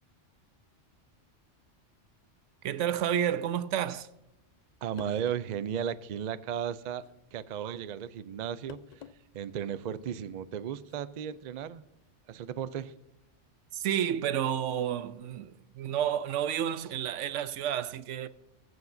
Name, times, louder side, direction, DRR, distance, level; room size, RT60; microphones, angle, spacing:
voice 1, 2.6-4.1 13.7-18.3, right 10 dB, 85° right, 0.9 m, -30 dB
sound 1, 4.6-4.7 5.0-5.5 6.9-7.2 8.7-9.2 9.6-9.7 10.8-11.0, left 8 dB, 60° left, 0.4 m, -49 dB
voice 2, 4.8-7.0 7.3-8.8 9.3-11.8 12.3-12.9, right 9 dB, 60° right, 0.4 m, -35 dB
20.5 x 7.8 x 2.6 m
omnidirectional pair, 1.2 m